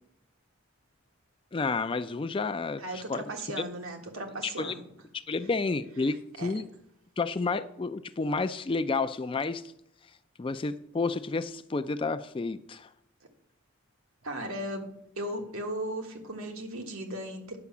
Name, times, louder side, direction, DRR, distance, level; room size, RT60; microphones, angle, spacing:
voice 1, 1.5-2.8 3.1-3.2 4.4-4.7 5.3-6.6 7.2-9.6 10.4-12.9, left 3 dB, 25° left, 0.3 m, -30 dB
voice 2, 2.8-4.8 6.0-6.5 14.2-14.8 15.2-17.6, right 1 dB, 80° right, 1.6 m, -37 dB
9.6 x 5.7 x 7.1 m
head